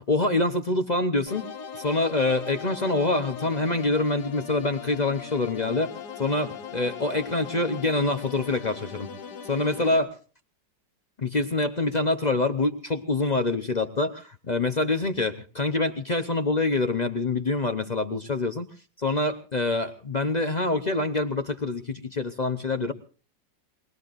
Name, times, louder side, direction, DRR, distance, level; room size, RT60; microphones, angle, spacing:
voice 1, 0.0-1.4 1.7-5.9 6.2-9.1 9.5-10.1 11.2-18.7 19.0-22.9, left 2 dB, 40° left, 8 dB, 0.6 m, -26 dB
sound 1, 1.3-10.0, left 6 dB, 70° left, 1.9 m, -39 dB
24.0 x 19.5 x 2.5 m, 0.38 s
omnidirectional pair, 1.9 m